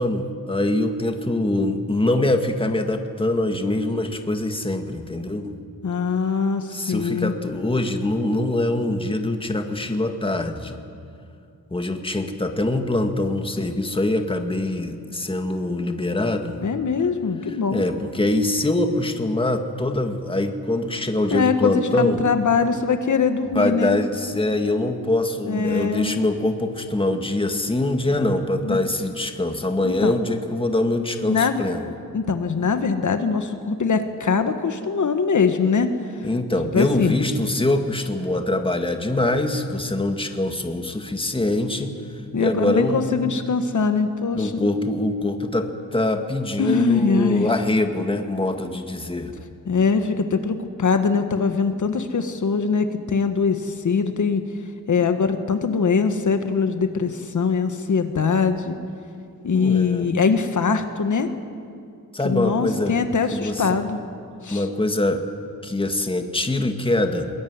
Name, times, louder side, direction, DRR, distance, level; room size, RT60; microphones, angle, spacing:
voice 1, 0.0-5.5 6.7-10.8 11.7-16.6 17.7-22.2 23.5-31.9 36.2-41.9 42.4-43.2 44.3-49.3 59.5-60.1 62.1-63.0 63.3-63.6 64.5-65.2 65.6-67.3, left 1 dB, 15° left, 5 dB, 1.9 m, -23 dB
voice 2, 5.8-7.3 16.6-17.8 21.3-24.0 25.5-26.1 28.6-28.8 29.8-30.1 31.3-31.6 32.1-35.9 36.2-36.3 36.7-37.2 42.3-44.5 46.6-47.5 49.6-54.4 54.9-58.8 59.4-61.3 62.2-64.0 64.4-64.7, left 5 dB, 55° left, 7 dB, 1.6 m, -22 dB
22.0 x 21.0 x 9.7 m, 2.4 s
cardioid pair, 95°, 35 cm